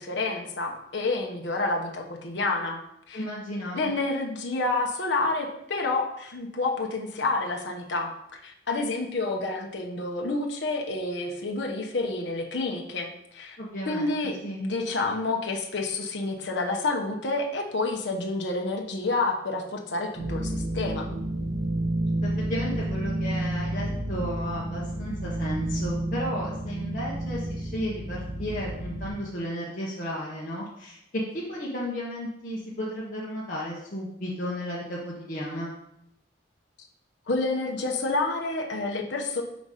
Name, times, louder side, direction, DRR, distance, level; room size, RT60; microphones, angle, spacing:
voice 1, 0.0-2.8 3.1-3.2 3.7-13.6 13.9-21.1 37.3-39.4, left 3 dB, 65° left, 1 dB, 0.9 m, -29 dB
voice 2, 3.1-3.9 13.6-14.7 22.2-31.0 31.3-35.7, equal, 45° left, -6 dB, 1.0 m, -34 dB
sound 1, 20.2-29.1, right 1 dB, 55° right, 1.4 m, -30 dB
5.1 x 4.0 x 4.9 m, 0.77 s
head